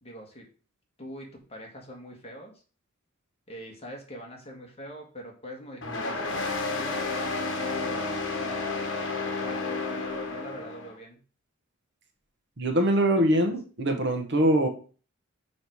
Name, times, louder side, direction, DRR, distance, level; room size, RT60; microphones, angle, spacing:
voice 1, 0.0-0.5 1.0-2.5 3.5-8.8 9.2-11.2 13.3-13.5, equal, 30° left, 1 dB, 1.7 m, -43 dB
sound 1, 5.8-10.9, left 3 dB, 65° left, 1.4 m, -31 dB
voice 2, 12.6-14.7, right 1 dB, 55° right, 5 dB, 1.2 m, -23 dB
5.5 x 5.2 x 4.7 m, 0.38 s
head